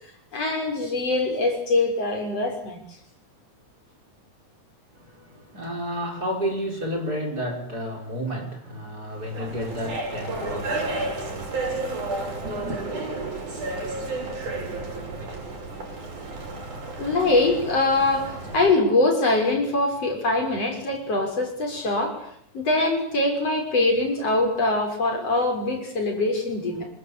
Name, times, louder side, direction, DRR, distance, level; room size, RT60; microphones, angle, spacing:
voice 1, 0.3-2.8 17.0-22.2 22.5-26.9, left 2 dB, 50° left, 7.1 m, -23 dB
voice 2, 4.9-12.8, equal, 30° right, 5.3 m, -32 dB
sound 1, 9.1-18.7, right 2 dB, 85° right, 8.4 m, -32 dB
26.5 x 26.0 x 8.5 m
omnidirectional pair, 3.4 m